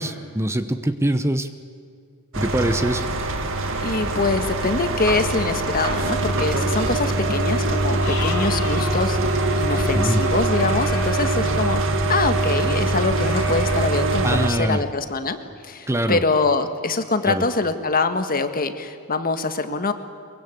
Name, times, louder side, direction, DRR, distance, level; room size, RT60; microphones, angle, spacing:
voice 1, 0.0-1.5 2.4-3.0 9.9-10.2 14.2-14.8 15.9-16.2 17.2-17.4, right 1 dB, 10° right, 10 dB, 0.8 m, -23 dB
sound 1, 2.3-14.5, right 2 dB, 60° right, 2.1 m, -23 dB
voice 2, 3.8-9.2 9.6-15.4 15.6-19.9, left 3 dB, 40° left, 8 dB, 1.6 m, -24 dB
sound 2, 4.2-5.8 6.6-6.7 7.0-7.1 7.9-11.7 13.1-13.8, left 5 dB, 70° left, 3.6 m, -37 dB
23.5 x 23.0 x 8.4 m, 2.3 s
head